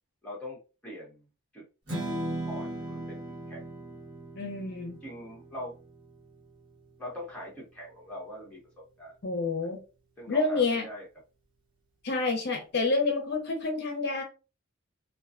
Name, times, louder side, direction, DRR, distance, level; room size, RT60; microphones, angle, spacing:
voice 1, 0.2-1.3 1.5-1.7 2.5-3.2 3.5-3.6 5.0-5.8 7.0-9.2 9.6-9.7 10.2-11.1, left 1 dB, 5° left, 0.9 m, -42 dB
Strum, 1.9-8.2, right 1 dB, 60° right, 1.1 m, -39 dB
voice 2, 4.3-5.0 9.2-9.8 10.3-10.9 12.0-14.2, left 3 dB, 55° left, 0.6 m, -28 dB
2.5 x 2.2 x 2.4 m
head